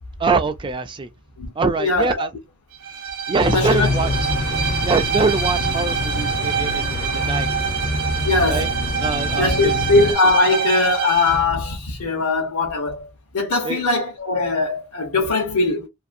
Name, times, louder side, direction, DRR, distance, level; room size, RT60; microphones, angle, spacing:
voice 1, 0.2-1.1 1.6-2.3 3.3-4.2 4.8-7.5 8.5-8.7 9.0-9.8 13.6-13.8, right 4 dB, 20° right, 0.3 m, -23 dB
voice 2, 1.8-2.3 3.5-3.9 8.2-8.7 9.4-13.1 13.3-15.9, left 3 dB, 75° left, 0.8 m, -20 dB
Bowed string instrument, 2.8-11.5, right 7 dB, 80° right, 0.7 m, -26 dB
sound 1, 3.4-10.1, left 2 dB, 50° left, 0.5 m, -26 dB
2.6 x 2.5 x 2.5 m
head